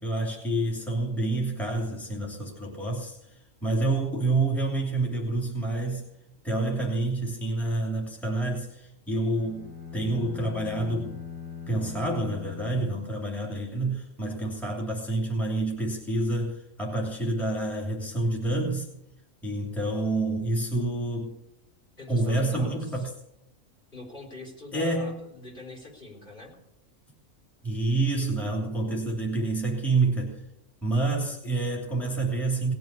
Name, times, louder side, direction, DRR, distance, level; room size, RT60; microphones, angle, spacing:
voice 1, 0.0-6.1 6.4-11.2 11.7-18.9 19.4-21.4 22.1-23.1 24.7-25.2 27.6-30.4 30.8-32.7, right 2 dB, ahead, -3 dB, 3.0 m, -28 dB
sound 1, 9.3-13.7, left 7 dB, 75° left, 3.0 m, -41 dB
voice 2, 22.0-23.0 23.9-26.5, left 2 dB, 40° left, -1 dB, 4.5 m, -43 dB
19.0 x 7.7 x 8.3 m, 0.79 s
omnidirectional pair, 1.4 m